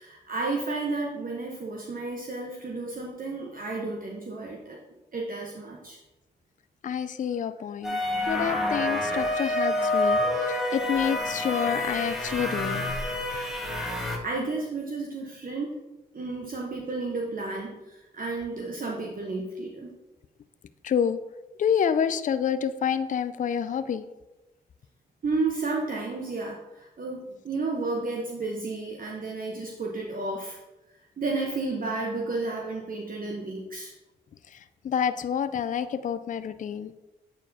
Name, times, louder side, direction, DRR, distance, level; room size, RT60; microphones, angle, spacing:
voice 1, 0.0-4.8 5.1-6.0 14.0-15.7 16.1-19.9 25.2-30.6 31.2-33.9, right 3 dB, 45° right, -1 dB, 1.0 m, -32 dB
voice 2, 6.8-12.8 20.8-21.2 21.6-24.0 34.5-36.9, left 8 dB, 45° left, 12 dB, 0.4 m, -28 dB
sound 1, 7.8-14.2, left 1 dB, ahead, 1.5 m, -28 dB
8.5 x 4.4 x 2.7 m, 1.0 s
supercardioid pair, 45°, 19 cm